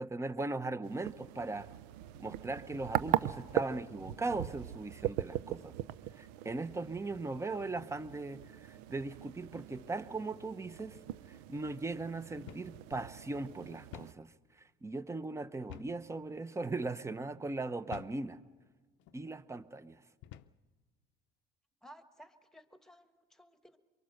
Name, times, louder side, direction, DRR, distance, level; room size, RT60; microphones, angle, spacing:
voice 1, 0.0-1.7 2.2-5.8 6.2-11.0 11.3-14.3 14.6-18.4 19.1-20.0, right 3 dB, 15° right, 14 dB, 0.9 m, -39 dB
sound 1, 0.8-14.1, right 14 dB, 90° right, 0.6 m, -40 dB
sound 2, 12.5-12.8 13.1-13.2 13.9-14.2 15.7-16.0 16.7-16.9 17.9-18.2 19.0-19.2 20.2-20.6, left 12 dB, 70° left, 0.6 m, -49 dB
voice 2, 21.8-23.8, equal, ahead, 9 dB, 1.5 m, -57 dB
24.0 x 23.0 x 6.6 m, 1.4 s
supercardioid pair, 95°, 20 cm